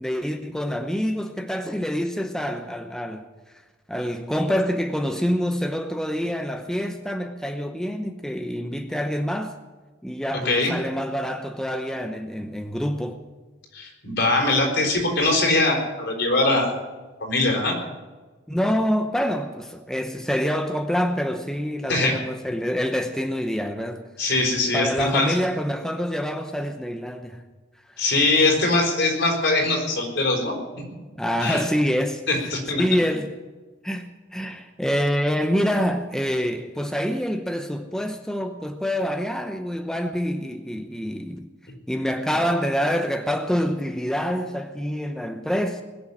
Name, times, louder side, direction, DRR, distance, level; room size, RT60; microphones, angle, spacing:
voice 1, 0.0-3.3 3.9-9.6 10.0-13.2 18.5-24.1 24.7-27.4 28.4-28.5 31.1-32.2 32.8-33.4 33.8-41.5 41.9-45.8, equal, 5° left, 0.8 m, -26 dB
voice 2, 13.7-16.7 17.2-17.8 21.9-22.2 24.2-25.3 28.0-30.5 31.4-31.6 32.3-32.8, left 2 dB, 65° left, 4.6 m, -22 dB
20.5 x 7.1 x 9.8 m
head